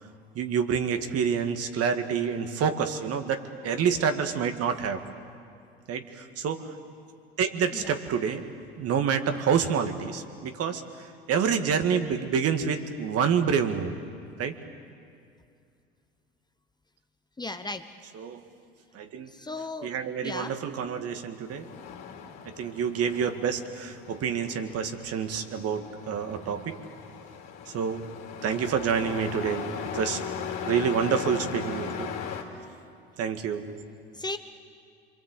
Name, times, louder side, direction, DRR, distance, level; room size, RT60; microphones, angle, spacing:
voice 1, 0.4-5.0 5.9-6.7 7.4-8.4 8.8-10.8 11.3-13.9 14.4-14.5 18.1-18.4 18.9-19.3 19.8-21.7 22.4-26.8 27.7-28.1 28.4-29.7 29.9-30.2 30.6-32.1 33.2-33.7, right 7 dB, 50° right, 7 dB, 2.1 m, -27 dB
voice 2, 17.4-17.8 19.3-19.9 20.2-20.5 34.2-34.4, left 2 dB, 15° left, 8 dB, 1.1 m, -35 dB
Truck, 21.3-32.4, left 7 dB, 55° left, 3.2 m, -38 dB
26.5 x 24.0 x 8.3 m, 2.4 s
hypercardioid pair, 75°, 32 cm